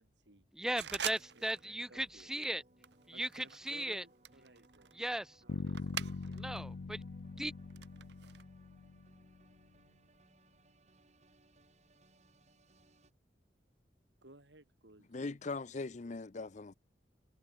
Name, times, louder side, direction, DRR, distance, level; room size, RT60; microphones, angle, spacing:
voice 1, 0.0-0.5 1.3-2.3 3.1-4.9 5.4-6.7 14.2-15.4, right 1 dB, 90° right, 4.5 m, -60 dB
voice 2, 0.6-2.6 3.1-4.0 4.9-5.4 6.4-7.0 7.4-7.5, right 1 dB, 5° right, 0.4 m, -37 dB
sound 1, 0.8-13.1, right 2 dB, 40° right, 5.3 m, -67 dB
sound 2, 0.8-1.7 2.0-2.3 2.8-6.6 6.9-8.4, right 9 dB, 70° right, 0.9 m, -45 dB
Bass guitar, 5.5-9.5, left 3 dB, 85° left, 0.6 m, -43 dB
voice 3, 15.1-16.7, left 3 dB, 45° left, 0.6 m, -40 dB
head